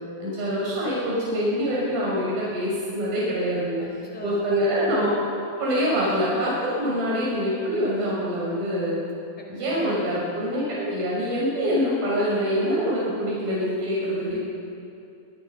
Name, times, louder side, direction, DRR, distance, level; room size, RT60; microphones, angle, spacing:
voice 1, 0.2-3.8 4.2-5.1 5.6-9.0 9.5-14.4, equal, 80° right, -6 dB, 7.9 m, -25 dB
voice 2, 3.8-4.6 9.4-9.9 13.5-13.7 14.2-14.4, left 1 dB, 5° left, -1 dB, 3.5 m, -42 dB
27.5 x 23.5 x 5.8 m, 2.6 s
omnidirectional pair, 4.1 m